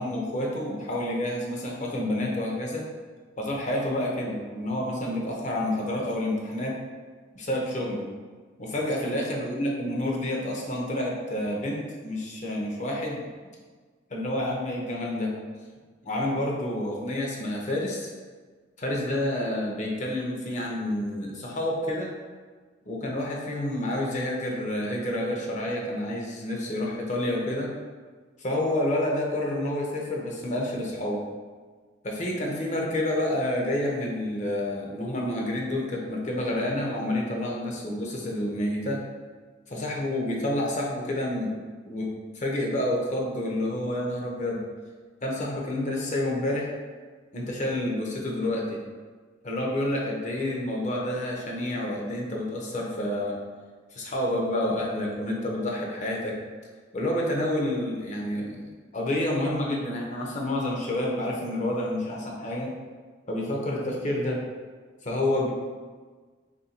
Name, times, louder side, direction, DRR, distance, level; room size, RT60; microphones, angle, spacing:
voice 1, 0.0-2.8 3.4-6.8 7.3-8.1 8.6-13.2 14.1-15.3 16.0-18.1 18.8-22.1 22.8-27.7 28.4-31.2 32.0-39.0 39.7-41.6 41.8-42.1 42.3-44.6 45.2-46.7 47.3-48.8 49.4-53.4 53.9-56.4 56.9-58.6 58.9-62.7 63.3-64.4 65.0-65.5, left 1 dB, 40° left, -2 dB, 0.7 m, -29 dB
3.1 x 2.6 x 4.3 m, 1.5 s
head